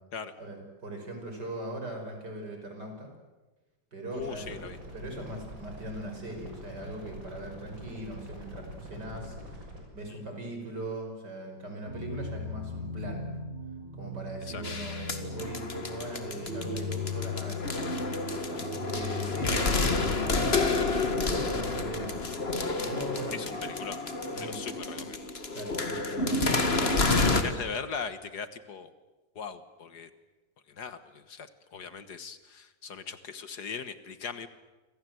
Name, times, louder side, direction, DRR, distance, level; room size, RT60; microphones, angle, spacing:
voice 1, 0.4-3.1 3.9-4.6 4.9-13.3 13.9-17.7 18.0-20.8 21.2-22.1 22.7-23.7 24.3-24.6 25.0-25.1 25.5-26.5 26.8-27.6, right 1 dB, 60° right, 3 dB, 6.4 m, -40 dB
voice 2, 4.1-4.8 10.1-10.2 14.5-14.6 19.1-19.2 23.3-24.0 24.4-25.3 26.9-28.9 29.4-30.1 30.7-34.5, left 6 dB, 60° left, 11 dB, 1.9 m, -39 dB
sound 1, 4.2-9.8, equal, 85° right, 7.4 m, -44 dB
sound 2, 11.9-24.4, left 3 dB, 35° right, 7.2 m, -40 dB
sound 3, 14.6-27.4, left 3 dB, 35° left, 2.1 m, -29 dB
28.5 x 25.5 x 7.9 m, 1.2 s
omnidirectional pair, 2.0 m